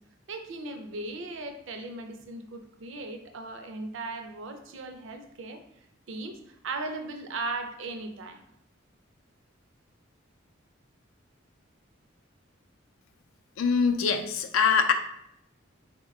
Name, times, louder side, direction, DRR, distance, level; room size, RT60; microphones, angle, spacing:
voice 1, 0.3-5.6 6.1-8.4, right 2 dB, 65° right, 6 dB, 0.5 m, -37 dB
voice 2, 13.6-14.9, left 6 dB, 80° left, 6 dB, 0.4 m, -23 dB
3.8 x 2.2 x 3.5 m, 0.77 s
head